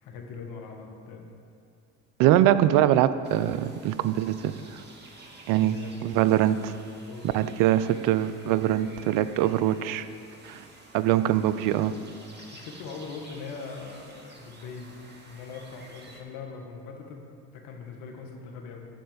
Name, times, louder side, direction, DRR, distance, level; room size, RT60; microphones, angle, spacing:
voice 1, 0.0-1.3 5.6-5.9 7.0-7.7 8.0-8.1 8.4-8.7 12.4-15.0 15.3-18.8, left 5 dB, 75° left, 2 dB, 1.7 m, -41 dB
voice 2, 2.2-4.5 5.5-6.7 7.3-10.1 10.4-10.6 10.9-12.0, right 12 dB, 70° right, 14 dB, 0.6 m, -23 dB
sound 1, 3.2-16.2, right 2 dB, 30° right, 2.0 m, -51 dB
12.5 x 4.4 x 8.0 m, 2.4 s
supercardioid pair, 75°, 33 cm